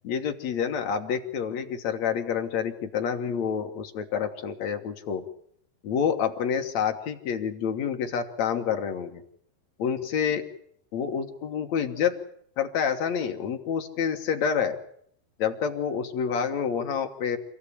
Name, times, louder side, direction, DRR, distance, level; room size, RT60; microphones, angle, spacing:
voice 1, 0.0-5.2 5.8-9.2 9.8-10.5 10.9-12.2 12.6-14.8 15.4-17.4, left 7 dB, 55° left, 5 dB, 2.1 m, -28 dB
26.5 x 16.5 x 8.5 m, 0.67 s
omnidirectional pair, 4.8 m